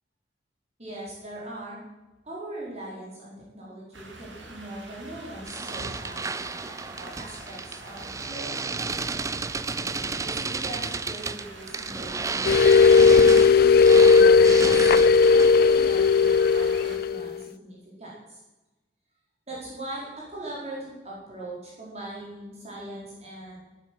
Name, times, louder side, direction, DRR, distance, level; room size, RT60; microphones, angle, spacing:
voice 1, 0.8-1.8 2.2-8.0 8.3-9.1 10.2-14.9 15.3-18.4 19.5-23.6, right 1 dB, 35° right, -5 dB, 4.8 m, -40 dB
sound 1, 3.9-17.0, right 2 dB, 80° right, 3.3 m, -44 dB
sound 2, 5.5-15.7, right 4 dB, 15° right, 0.4 m, -32 dB
sound 3, 12.4-17.4, left 5 dB, 50° left, 0.4 m, -16 dB
18.0 x 9.4 x 7.8 m, 1.1 s
head